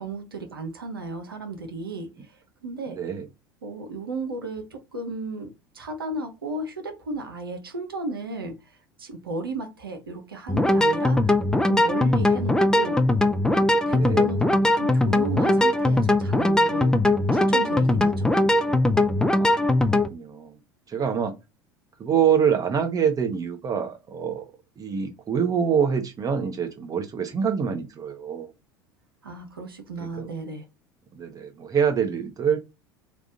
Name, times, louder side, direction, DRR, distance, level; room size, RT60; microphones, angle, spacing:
voice 1, 0.0-2.3 2.6-3.0 3.6-13.0 13.9-17.0 17.3-18.3 29.2-30.7, right 2 dB, 90° right, 0.9 m, -34 dB
voice 2, 2.9-3.2 13.9-14.3 19.3-19.8 20.1-20.6 20.9-21.3 22.0-24.4 24.8-28.5 30.2-30.3 31.1-32.6, right 7 dB, 30° right, 1.1 m, -25 dB
sound 1, 10.5-20.1, left 1 dB, 5° left, 0.5 m, -20 dB
3.5 x 2.5 x 3.9 m
hypercardioid pair, 75°, 12 cm